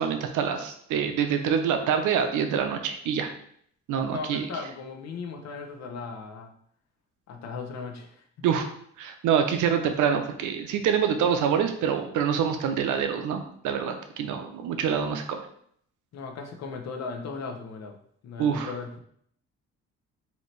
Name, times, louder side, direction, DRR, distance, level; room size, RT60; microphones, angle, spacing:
voice 1, 0.0-3.3 3.9-4.5 8.4-8.7 9.0-15.4 18.4-18.7, right 7 dB, 80° right, 7 dB, 0.6 m, -26 dB
voice 2, 4.1-6.5 7.3-8.6 16.1-18.0 18.2-19.0, left 4 dB, 60° left, 4 dB, 0.7 m, -37 dB
4.2 x 2.8 x 3.2 m, 0.65 s
cardioid pair, 90°, 30 cm